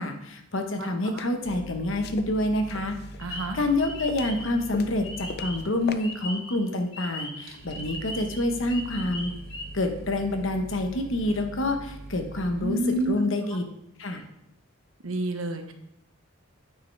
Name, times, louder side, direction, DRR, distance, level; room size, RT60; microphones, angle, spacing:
voice 1, 0.0-3.0 3.5-9.3 9.7-12.8 13.1-13.6 14.0-14.2, left 1 dB, 65° left, 5 dB, 1.1 m, -27 dB
sound 1, 0.6-1.3 2.0-3.2 3.6-4.5 4.7-5.6 5.9-6.0, left 4 dB, 50° left, 0.5 m, -39 dB
sound 2, 1.4-13.0, right 1 dB, 50° right, 0.9 m, -43 dB
sound 3, 3.2-5.7 6.0-9.7, left 2 dB, 25° left, 1.2 m, -39 dB
voice 2, 3.2-3.6 12.6-13.2 15.0-15.7, right 1 dB, 80° right, 6 dB, 1.0 m, -29 dB
9.4 x 6.7 x 3.3 m, 0.79 s
head